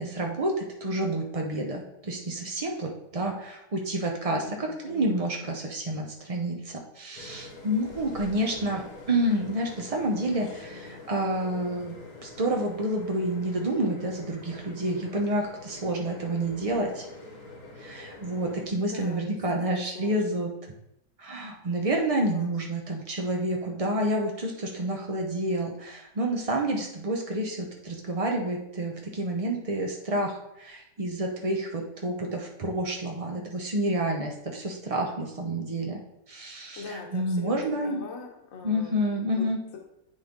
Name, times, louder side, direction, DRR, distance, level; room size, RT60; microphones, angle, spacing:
voice 1, 0.0-12.0 12.2-17.1 17.8-20.7 21.2-36.0 36.3-38.0 38.6-39.6, right 1 dB, 65° right, 1 dB, 0.3 m, -29 dB
voice 2, 4.4-5.5 10.3-10.4 10.7-11.1 18.8-20.4 22.2-22.6 36.8-39.5, left 4 dB, 55° left, 2 dB, 1.3 m, -43 dB
sound 1, 7.1-18.7, left 2 dB, 70° left, 1.9 m, -45 dB
9.8 x 3.8 x 3.6 m, 0.83 s
omnidirectional pair, 1.8 m